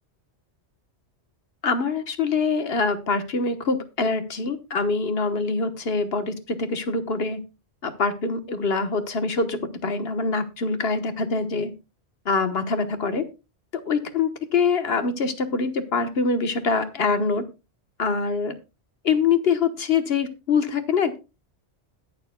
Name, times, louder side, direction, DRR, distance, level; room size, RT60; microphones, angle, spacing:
voice 1, 1.6-7.4 7.8-11.7 12.2-13.2 13.9-17.4 18.0-18.5 19.0-21.2, left 4 dB, 65° left, 9 dB, 1.4 m, -24 dB
21.0 x 7.1 x 2.2 m, 0.28 s
omnidirectional pair, 1.1 m